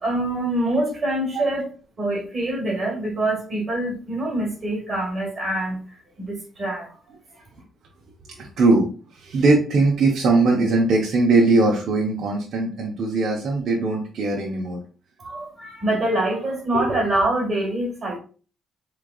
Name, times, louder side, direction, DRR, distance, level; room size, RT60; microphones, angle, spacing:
voice 1, 0.0-1.7 2.0-6.9 15.2-18.2, right 1 dB, 40° right, -2 dB, 1.6 m, -25 dB
voice 2, 8.4-8.9 9.1-14.8 16.7-17.0, right 3 dB, 65° right, -2 dB, 0.9 m, -20 dB
3.7 x 3.3 x 2.3 m, 0.38 s
cardioid pair, 90°, 0 cm